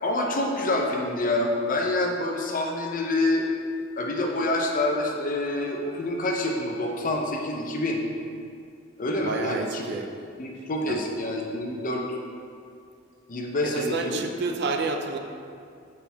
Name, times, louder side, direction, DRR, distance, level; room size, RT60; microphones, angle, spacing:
voice 1, 0.0-3.5 4.0-8.0 9.0-9.9 10.4-12.2 13.3-14.2, left 2 dB, 45° left, 1 dB, 0.7 m, -27 dB
voice 2, 9.2-10.1 10.9-11.0 13.6-15.2, right 3 dB, 55° right, 4 dB, 0.5 m, -29 dB
6.6 x 5.9 x 3.5 m, 2.3 s
head